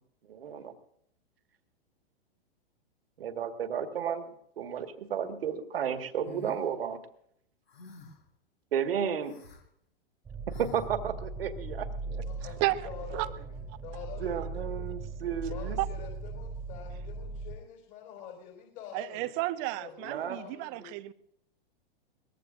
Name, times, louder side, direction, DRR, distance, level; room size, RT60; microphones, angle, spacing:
voice 1, 0.3-0.7 3.2-4.3 4.6-7.0 8.7-9.4 10.6-12.2 14.2-15.8 20.0-20.4, right 8 dB, 70° right, 7 dB, 1.9 m, -33 dB
sound 1, 6.2-6.6 7.7-8.2 9.2-9.6 10.5-10.9, left 3 dB, 85° left, 4.6 m, -48 dB
sound 2, 10.2-17.6, right 3 dB, 10° right, 0.7 m, -39 dB
voice 2, 12.2-14.6 15.4-19.4 19.7-21.0, left 8 dB, 40° left, 0 dB, 4.4 m, -47 dB
voice 3, 18.9-21.1, right 18 dB, 40° right, 13 dB, 0.9 m, -32 dB
22.5 x 19.5 x 2.6 m, 0.71 s
hypercardioid pair, 115°, 30 cm